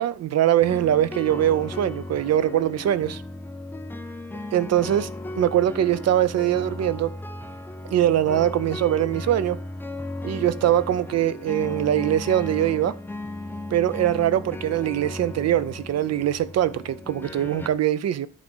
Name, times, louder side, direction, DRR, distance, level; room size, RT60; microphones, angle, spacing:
voice 1, 0.0-3.2 4.5-5.1 5.4-7.1 7.9-9.6 10.2-13.0 13.7-18.3, right 11 dB, 50° right, 0.5 m, -22 dB
sound 1, 0.6-17.7, left 2 dB, 5° left, 0.4 m, -36 dB
10.5 x 3.8 x 5.3 m
cardioid pair, 170°, 33 cm